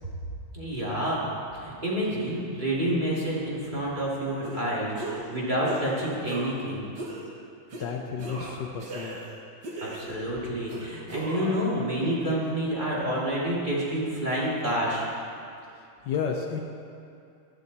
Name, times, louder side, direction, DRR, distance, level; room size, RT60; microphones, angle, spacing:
voice 1, 0.5-6.8 9.8-15.1, right 1 dB, 20° right, -6 dB, 2.5 m, -28 dB
sound 1, 4.4-4.6 4.9-5.3 5.6-5.9 6.2-6.6 7.0-7.2 7.7-7.9 8.2-9.3 9.6-10.3 10.7-11.6, right 2 dB, 60° right, 2.1 m, -37 dB
voice 2, 7.8-9.2 16.0-16.6, left 6 dB, 65° left, 2 dB, 1.3 m, -31 dB
13.0 x 12.5 x 4.1 m, 2.5 s
omnidirectional pair, 2.2 m